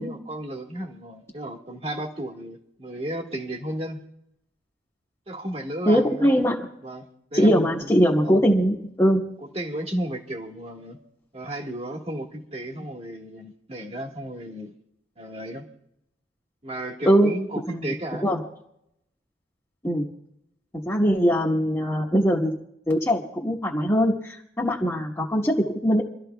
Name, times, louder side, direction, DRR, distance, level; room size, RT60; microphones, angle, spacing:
voice 1, 0.0-4.0 5.3-6.3 6.8-7.9 8.2-8.4 9.4-11.0 11.3-14.7 15.2-15.7 16.6-18.3, right 1 dB, 35° right, 1 dB, 1.6 m, -34 dB
voice 2, 5.9-6.7 7.3-9.2 17.1-17.3 17.7-17.8 18.2-18.4 19.8-20.0 20.8-22.5 22.9-26.0, equal, 15° left, -5 dB, 1.2 m, -21 dB
28.5 x 13.0 x 2.3 m, 0.77 s
head